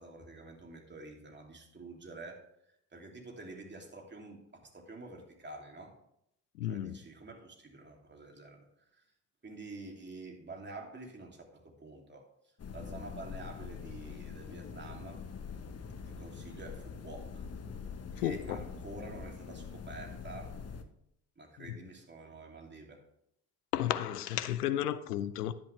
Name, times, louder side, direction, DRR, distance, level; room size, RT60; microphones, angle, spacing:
voice 1, 0.0-2.4 2.9-6.0 6.6-9.0 9.4-15.3 16.1-17.4 18.2-20.6 21.4-23.0, right 2 dB, 25° right, 2.8 m, -48 dB
voice 2, 6.6-7.0 18.2-18.4 23.7-25.5, left 12 dB, 90° left, 0.6 m, -32 dB
sound 1, 12.6-20.8, left 6 dB, 35° left, 1.2 m, -44 dB
10.5 x 9.0 x 3.3 m
hypercardioid pair, 55°, 45 cm